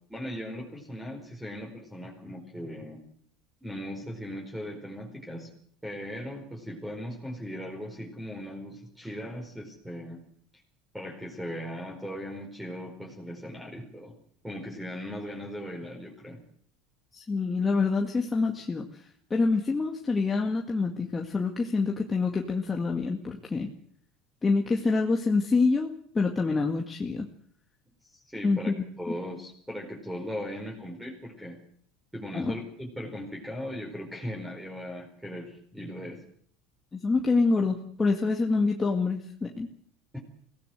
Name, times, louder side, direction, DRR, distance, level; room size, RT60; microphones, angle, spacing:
voice 1, 0.1-3.0 3.6-5.5 5.8-10.2 10.9-14.1 14.4-16.4 28.1-28.7 29.0-31.6 32.1-36.2 40.1-40.2, equal, 5° right, 0 dB, 4.9 m, -38 dB
voice 2, 17.1-18.9 19.3-23.7 24.4-27.3 28.4-28.7 32.3-32.5 36.9-39.7, left 4 dB, 20° left, 1 dB, 2.1 m, -26 dB
23.0 x 17.5 x 7.9 m, 0.63 s
supercardioid pair, 120°, 0 cm